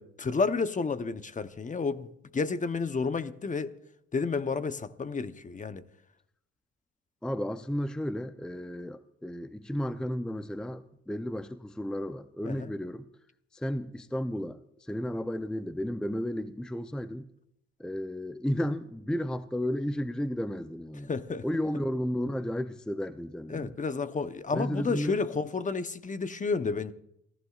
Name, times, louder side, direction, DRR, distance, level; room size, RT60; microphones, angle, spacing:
voice 1, 0.0-2.1 2.3-3.7 4.1-5.8 12.4-12.7 21.1-21.5 23.5-26.9, left 4 dB, 25° left, 0.9 m, -31 dB
voice 2, 7.2-13.0 13.5-17.3 17.8-21.1 21.4-23.7 24.5-25.2, equal, 5° left, 0.6 m, -33 dB
28.0 x 15.0 x 2.4 m
cardioid pair, 90°, 30 cm